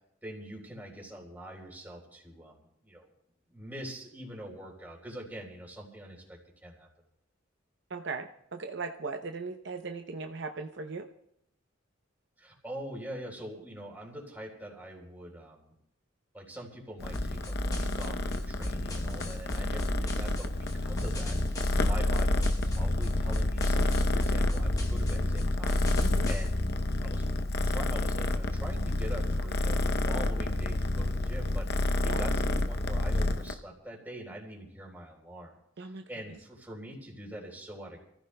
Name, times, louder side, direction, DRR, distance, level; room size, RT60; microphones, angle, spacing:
voice 1, 0.2-3.1 3.5-6.9 12.4-15.8 16.3-26.6 27.0-35.5 35.8-38.0, right 1 dB, 10° right, -1 dB, 3.7 m, -44 dB
voice 2, 7.9-11.1 26.0-26.3 32.1-32.2 35.8-36.0, right 4 dB, 65° right, 5 dB, 0.7 m, -38 dB
Purr, 17.0-33.5, left 2 dB, 55° left, 0.7 m, -29 dB
sound 1, 17.1-26.5, equal, 20° left, 0.9 m, -37 dB
29.0 x 15.0 x 2.2 m, 0.77 s
head